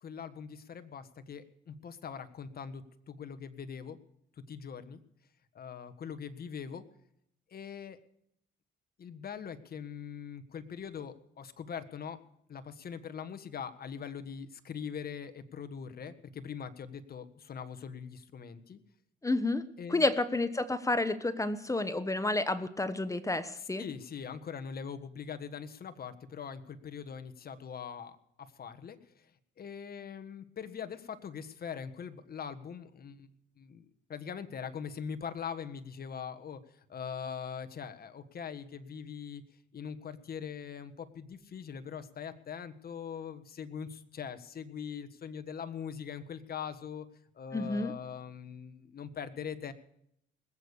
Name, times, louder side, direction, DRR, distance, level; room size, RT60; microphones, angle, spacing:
voice 1, 0.0-4.0 4.5-5.0 5.5-6.8 7.5-8.0 9.0-12.2 12.5-18.8 19.8-20.1 23.6-29.3 29.6-33.3 33.6-39.4 39.7-47.1 47.3-49.7, left 7 dB, 50° left, 10 dB, 1.5 m, -42 dB
voice 2, 19.2-19.6 19.9-23.8 47.5-47.9, left 2 dB, 15° left, 12 dB, 1.1 m, -30 dB
20.0 x 8.4 x 7.0 m, 0.73 s
cardioid pair, 90°, 20 cm